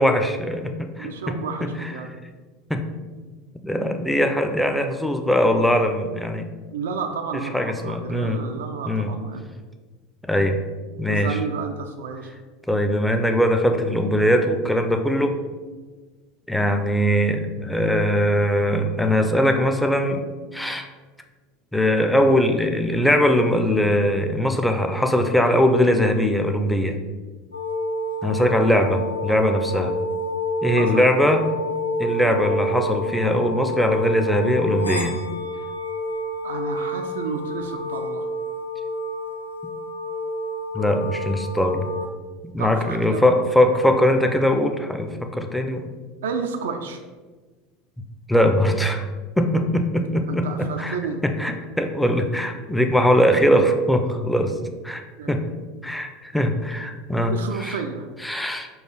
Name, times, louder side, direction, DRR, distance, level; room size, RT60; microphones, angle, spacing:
voice 1, 0.0-1.9 2.7-2.8 3.6-6.5 7.5-8.4 8.8-9.1 10.2-10.6 11.0-11.4 12.7-15.4 16.5-20.3 20.5-20.9 21.7-27.0 28.2-30.0 30.6-31.5 32.0-35.2 40.7-41.9 42.5-45.9 48.3-49.1 49.4-51.0 51.2-55.0 55.3-55.4 55.8-57.8 58.2-58.7, equal, 5° left, 5 dB, 0.5 m, -21 dB
voice 2, 1.0-2.1 6.7-9.6 11.1-12.4 30.8-31.0 32.1-32.4 36.4-38.3 42.6-43.4 46.2-47.0 50.3-51.2 55.2-55.3 57.3-58.1, right 5 dB, 70° right, 5 dB, 0.4 m, -31 dB
sound 1, 27.5-42.1, left 1 dB, 85° left, 0.4 m, -28 dB
4.6 x 2.4 x 4.7 m, 1.4 s
figure-of-eight pair, 75°, 0 cm